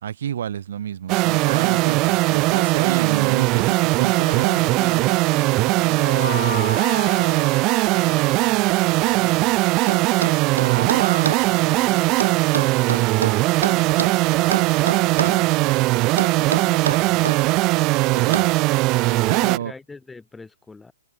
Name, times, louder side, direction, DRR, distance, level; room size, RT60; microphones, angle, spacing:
voice 1, 0.0-4.7 10.6-11.3 18.1-18.5 19.3-19.7, right 9 dB, 45° right, 1.7 m, -29 dB
sound 1, 1.1-19.6, right 22 dB, 20° right, 0.5 m, -19 dB
voice 2, 1.6-2.1 4.6-7.5 7.9-9.6 10.7-17.4 19.1-20.9, left 3 dB, 5° left, 1.9 m, -42 dB
sound 2, 6.0-8.7, left 7 dB, 65° left, 2.3 m, -33 dB
sound 3, 9.9-11.5 12.2-14.2 14.5-15.4 16.2-17.4 18.3-18.6, right 6 dB, 75° right, 1.6 m, -27 dB
hypercardioid pair, 175°, 0 cm